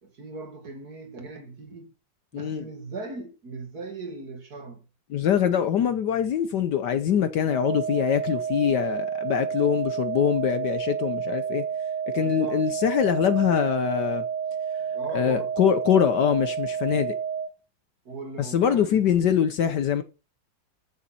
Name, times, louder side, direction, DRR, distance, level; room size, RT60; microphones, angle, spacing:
voice 1, 0.0-1.9 2.3-4.9 12.1-12.6 14.8-15.5 18.0-19.0, right 3 dB, 50° right, 2.5 m, -39 dB
voice 2, 2.3-2.6 5.1-11.6 12.1-14.2 15.1-17.2 18.5-20.0, left 9 dB, 65° left, 1.3 m, -23 dB
sound 1, 7.5-17.5, right 7 dB, 20° left, 2.1 m, -30 dB
13.5 x 7.1 x 4.2 m
omnidirectional pair, 2.2 m